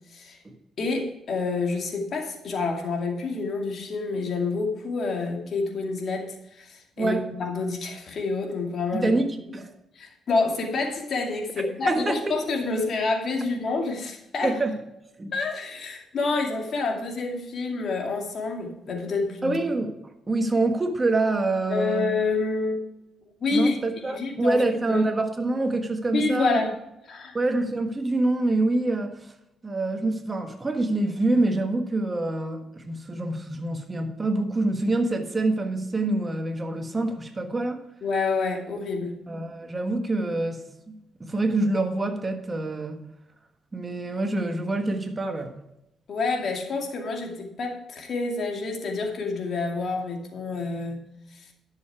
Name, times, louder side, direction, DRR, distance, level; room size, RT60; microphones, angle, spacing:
voice 1, 0.8-9.1 10.0-14.5 15.3-19.6 21.7-22.8 23.4-25.0 26.1-26.8 27.0-27.3 38.0-39.2 46.1-51.1 51.3-51.4, left 3 dB, 55° left, 2 dB, 2.4 m, -28 dB
voice 2, 7.0-7.3 8.9-9.3 9.5-9.7 11.6-12.3 14.4-14.8 15.2-15.4 19.4-19.9 20.3-22.1 23.5-26.6 27.3-29.3 29.6-37.8 39.3-40.9 41.2-43.0 43.7-45.5, right 2 dB, 25° right, 6 dB, 1.4 m, -26 dB
11.0 x 6.9 x 4.7 m, 0.86 s
cardioid pair, 90°, 0 cm